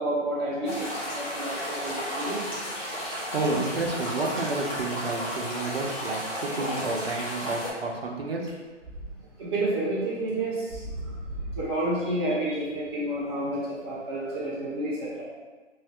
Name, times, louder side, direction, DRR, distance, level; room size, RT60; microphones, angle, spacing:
voice 1, 0.0-2.7 9.4-10.8 11.5-15.2, right 1 dB, 20° right, -8 dB, 0.9 m, -30 dB
sound 1, 0.6-7.7, equal, 30° left, 1.1 m, -33 dB
voice 2, 3.3-8.5, right 3 dB, 50° right, 0 dB, 0.7 m, -30 dB
sound 2, 8.5-9.1 9.5-9.6 10.3-10.4 10.7-11.8, right 1 dB, 5° left, 0.8 m, -36 dB
3.7 x 2.6 x 3.3 m, 1.3 s
hypercardioid pair, 155°, 37 cm